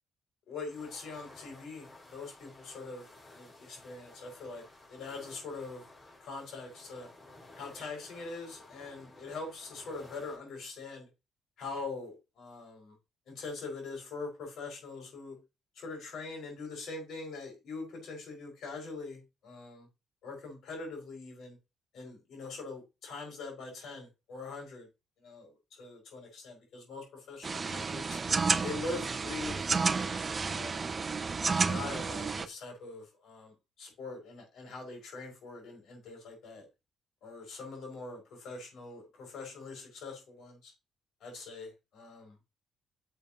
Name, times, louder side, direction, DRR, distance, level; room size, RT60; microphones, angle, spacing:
voice 1, 0.5-3.1 3.3-4.6 4.9-5.8 6.2-7.1 7.6-11.1 11.6-12.9 13.3-15.4 15.7-19.9 20.2-21.6 21.9-24.9 25.2-29.7 29.9-30.8 31.7-36.7 37.2-40.7 41.2-42.4, left 3 dB, 75° left, 5.1 m, -43 dB
sound 1, 0.6-10.4, left 2 dB, 40° left, 5.0 m, -55 dB
sound 2, 27.4-32.5, right 4 dB, 35° right, 0.5 m, -31 dB
10.0 x 6.8 x 2.9 m
cardioid pair, 90°, 0 cm